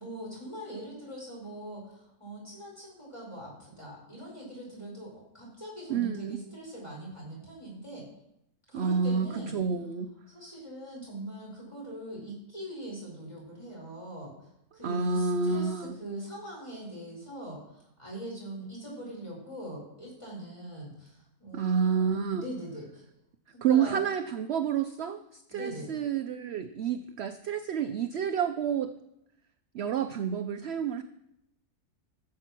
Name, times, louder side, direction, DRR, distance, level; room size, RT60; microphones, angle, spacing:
voice 1, 0.0-8.1 8.7-9.5 10.3-23.0 23.5-24.0 25.5-25.9, right 1 dB, 20° left, -4 dB, 5.1 m, -42 dB
voice 2, 5.9-6.4 8.7-10.1 14.8-16.0 21.5-22.5 23.6-28.9 29.7-31.0, right 6 dB, 60° right, 9 dB, 0.7 m, -29 dB
13.5 x 7.6 x 6.0 m, 0.82 s
omnidirectional pair, 1.6 m